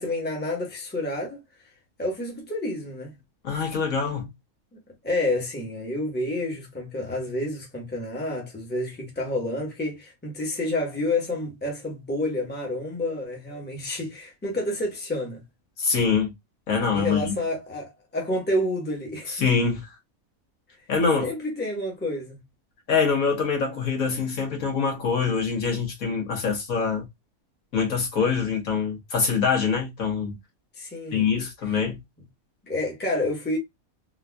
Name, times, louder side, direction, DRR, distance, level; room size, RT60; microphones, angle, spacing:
voice 1, 0.0-1.4 2.0-3.1 5.0-15.4 16.9-19.4 21.2-22.4 30.8-31.3 32.7-33.6, left 1 dB, 10° left, 0.9 m, -29 dB
voice 2, 3.4-4.3 15.8-16.3 16.7-17.3 19.4-19.9 20.9-21.3 22.9-27.1 27.7-30.4 31.1-32.0, left 5 dB, 75° left, 1.7 m, -24 dB
4.0 x 2.5 x 2.3 m
omnidirectional pair, 1.5 m